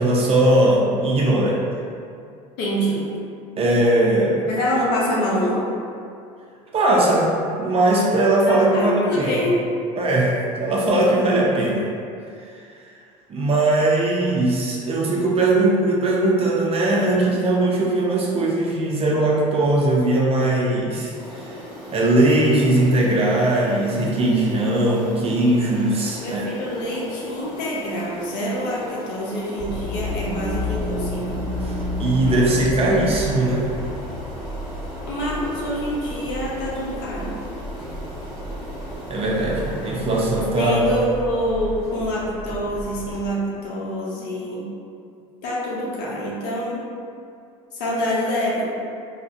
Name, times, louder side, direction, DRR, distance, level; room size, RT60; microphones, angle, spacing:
voice 1, 0.0-1.6 3.6-4.4 6.7-7.3 7.6-9.3 10.0-11.9 13.3-21.1 21.9-26.4 31.6-33.7 39.1-40.8, right 2 dB, 35° right, -3 dB, 0.5 m, -19 dB
voice 2, 2.6-3.2 4.5-5.7 8.5-9.6 26.2-31.4 35.1-37.3 40.6-44.7 45.4-46.9 47.7-48.6, equal, 65° left, -5 dB, 0.7 m, -26 dB
sound 1, 21.1-41.1, equal, ahead, 1.3 m, -38 dB
sound 2, 29.6-43.3, left 1 dB, 85° right, 0.6 m, -32 dB
2.3 x 2.1 x 2.6 m, 2.4 s
hypercardioid pair, 80°, 18 cm